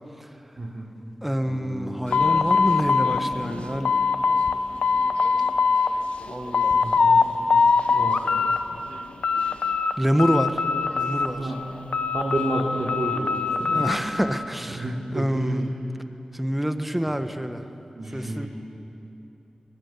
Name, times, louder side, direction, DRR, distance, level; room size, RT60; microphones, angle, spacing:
voice 1, 0.6-0.9 6.7-7.3 7.9-8.3 11.4-11.6 12.1-13.8 14.7-15.7 17.9-18.5, right 1 dB, 55° right, -3 dB, 3.1 m, -30 dB
voice 2, 1.2-4.0 6.3-6.8 7.6-7.8 10.0-11.5 13.7-15.7 16.3-17.7 18.1-18.5, equal, 5° right, 8 dB, 1.4 m, -27 dB
Bass guitar, 1.5-5.4, left 1 dB, 70° left, 4.7 m, -40 dB
sound 1, 2.1-4.6 4.8-5.9 6.3-7.2 7.5-8.6 8.9-9.9 10.2-11.5 11.9-14.0, left 5 dB, 85° left, 1.1 m, -22 dB
22.0 x 21.0 x 9.4 m, 2.9 s
wide cardioid pair, 70°, 2 cm